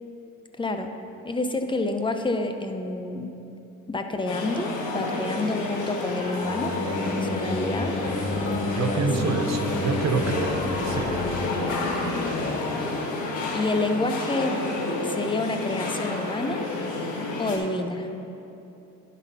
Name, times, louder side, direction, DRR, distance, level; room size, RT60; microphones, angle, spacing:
voice 1, 0.6-0.9 1.2-3.4 3.9-6.8 7.1-8.0 8.8-9.4 11.5-12.0 12.4-12.6 13.5-14.6 15.0-16.7 17.4-18.1, left 2 dB, 15° left, 6 dB, 0.6 m, -29 dB
sound 1, 4.3-17.6, left 2 dB, 80° left, 1.4 m, -30 dB
sound 2, 6.3-13.9, left 2 dB, 40° left, 1.0 m, -30 dB
voice 2, 8.6-11.2, right 4 dB, 60° right, 6 dB, 0.8 m, -27 dB
11.0 x 4.2 x 5.5 m, 2.8 s
cardioid pair, 90°, 30 cm